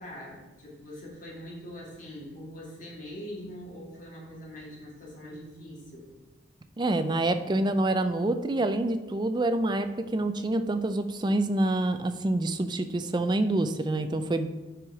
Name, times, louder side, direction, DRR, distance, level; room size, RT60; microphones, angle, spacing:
voice 1, 0.0-6.1, equal, 45° left, -4 dB, 2.3 m, -43 dB
voice 2, 6.8-14.5, right 2 dB, 25° right, 9 dB, 0.4 m, -27 dB
7.8 x 4.8 x 4.8 m, 1.2 s
head